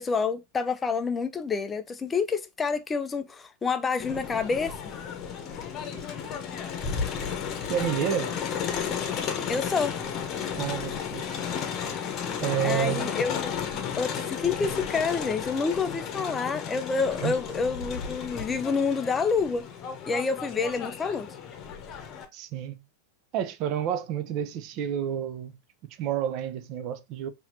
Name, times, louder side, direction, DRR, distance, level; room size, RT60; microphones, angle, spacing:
voice 1, 0.0-4.8 9.5-10.0 12.6-13.5 14.0-19.6 20.1-21.3, left 5 dB, 15° left, 0.4 m, -28 dB
Crowd, 4.0-22.2, left 7 dB, 35° left, 1.0 m, -33 dB
voice 2, 5.9-6.3 7.2-7.4 7.7-8.4 10.6-11.2 12.4-13.1 17.2-17.4 22.3-22.8 23.3-27.3, right 10 dB, 40° right, 0.6 m, -30 dB
5.7 x 2.9 x 2.7 m
figure-of-eight pair, 90°, 0 cm